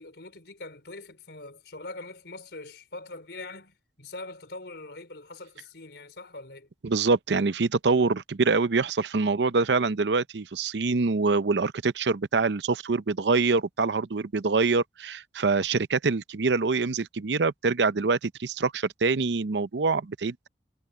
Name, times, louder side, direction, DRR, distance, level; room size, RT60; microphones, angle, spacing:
voice 1, 0.0-6.7, left 2 dB, 80° left, 3.7 m, -43 dB
voice 2, 6.8-20.5, right 4 dB, 85° right, 0.6 m, -25 dB
head